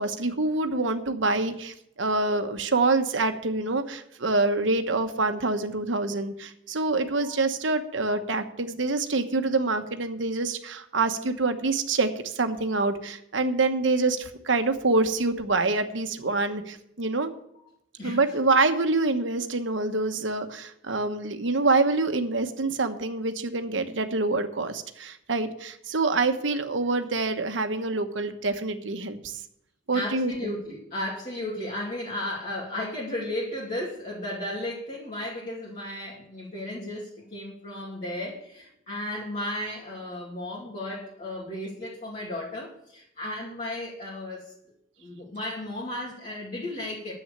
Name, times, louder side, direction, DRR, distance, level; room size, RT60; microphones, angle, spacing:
voice 1, 0.0-17.3 18.0-29.4 29.9-30.5, right 3 dB, 80° right, 7 dB, 1.1 m, -26 dB
voice 2, 18.0-18.3 29.9-44.5 45.0-47.1, left 1 dB, 40° left, -6 dB, 2.7 m, -34 dB
10.5 x 7.8 x 6.7 m, 0.77 s
head